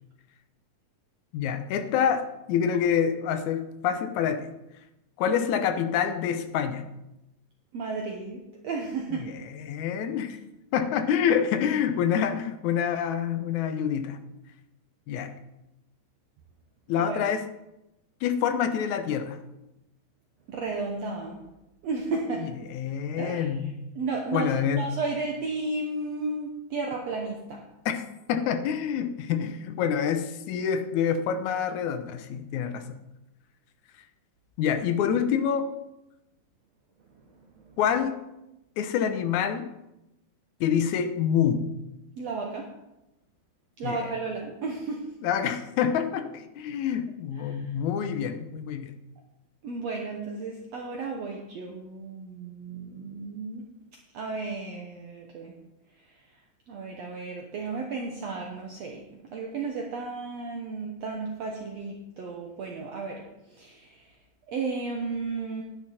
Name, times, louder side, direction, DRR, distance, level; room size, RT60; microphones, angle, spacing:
voice 1, 1.3-4.5 5.2-6.8 9.1-10.4 10.7-14.2 15.1-15.3 16.9-17.4 18.2-19.4 22.4-23.7 24.3-24.8 27.9-32.9 34.6-35.7 37.8-38.2 38.8-39.7 40.6-41.6 43.8-44.1 45.2-48.9, left 8 dB, 70° left, 8 dB, 1.9 m, -27 dB
voice 2, 7.7-9.3 17.0-17.2 20.5-21.4 21.8-22.5 23.1-23.7 23.9-27.6 37.4-37.7 42.2-42.7 43.8-45.1 47.5-47.7 49.6-53.6 54.1-55.5 56.7-64.1 64.5-65.6, right 3 dB, 65° right, 1 dB, 1.8 m, -33 dB
10.5 x 10.0 x 4.3 m, 0.93 s
omnidirectional pair, 4.0 m